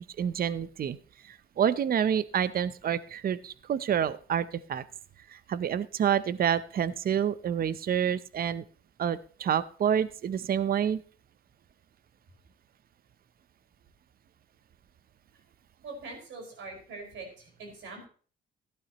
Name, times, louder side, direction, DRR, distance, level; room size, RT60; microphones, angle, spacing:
voice 1, 0.2-1.0 1.2-4.8 5.3-8.6 9.0-11.0, right 9 dB, 50° right, 16 dB, 0.7 m, -28 dB
voice 2, 15.8-18.1, right 3 dB, 75° right, 1 dB, 5.2 m, -43 dB
15.0 x 11.5 x 3.0 m, 0.42 s
cardioid pair, 90°, 20 cm